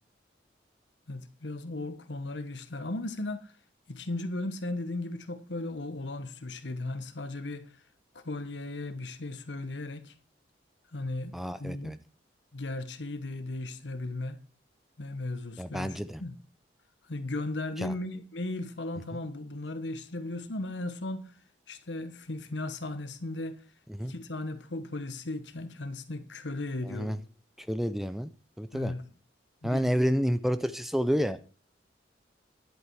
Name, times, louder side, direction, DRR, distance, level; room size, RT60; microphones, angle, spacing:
voice 1, 1.1-3.5 3.9-7.7 8.1-10.1 10.9-11.9 12.5-14.4 15.0-16.4 17.1-21.3 21.7-23.6 24.0-27.2 28.7-29.0 29.6-30.2, left 2 dB, 85° left, 1.2 m, -36 dB
voice 2, 11.3-12.0 15.6-16.2 17.8-17.9 23.9-24.1 26.8-27.2 27.6-28.3 28.6-28.9 29.6-31.4, equal, ahead, 0.4 m, -29 dB
11.0 x 8.1 x 4.7 m
head